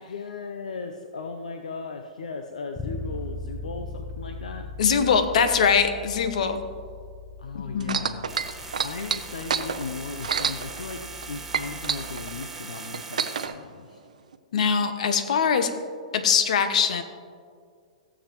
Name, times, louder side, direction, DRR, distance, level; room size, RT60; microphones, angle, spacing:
voice 1, 0.1-4.7 7.4-11.0 11.3-14.0, left 4 dB, 85° left, 5 dB, 0.6 m, -37 dB
Bass guitar, 2.8-12.6, left 3 dB, 15° left, 0.5 m, -40 dB
voice 2, 4.8-6.6 7.5-8.0 14.5-15.7 16.1-17.0, left 6 dB, 70° left, 8 dB, 1.0 m, -22 dB
sound 1, 7.8-11.3 11.5-13.5 14.3-14.4, right 6 dB, 85° right, 0.6 m, -28 dB
sound 2, 8.3-13.5, right 4 dB, 5° right, 1.1 m, -40 dB
16.0 x 7.4 x 3.0 m, 2.1 s
hypercardioid pair, 125°, 4 cm